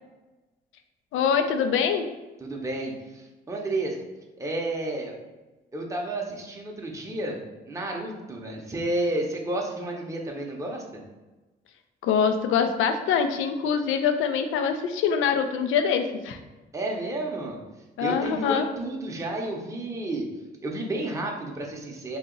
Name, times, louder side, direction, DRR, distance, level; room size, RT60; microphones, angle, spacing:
voice 1, 1.1-2.0 12.0-16.4 18.0-18.7, left 7 dB, 85° left, 7 dB, 0.4 m, -24 dB
voice 2, 2.4-4.0 4.4-5.2 5.7-11.0 16.7-17.6 18.0-20.3 20.6-22.2, right 2 dB, 15° right, -1 dB, 0.7 m, -31 dB
2.8 x 2.7 x 3.8 m, 1.1 s
cardioid pair, 90°, 20 cm